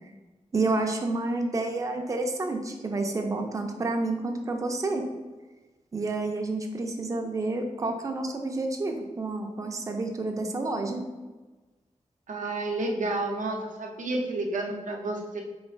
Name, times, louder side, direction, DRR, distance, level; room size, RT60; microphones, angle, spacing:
voice 1, 0.5-5.0 5.9-11.0, right 2 dB, 25° right, 3 dB, 0.4 m, -29 dB
voice 2, 12.3-15.4, right 2 dB, 90° right, 1 dB, 0.5 m, -30 dB
3.1 x 2.4 x 4.3 m, 1.2 s
wide cardioid pair, 115°, 13 cm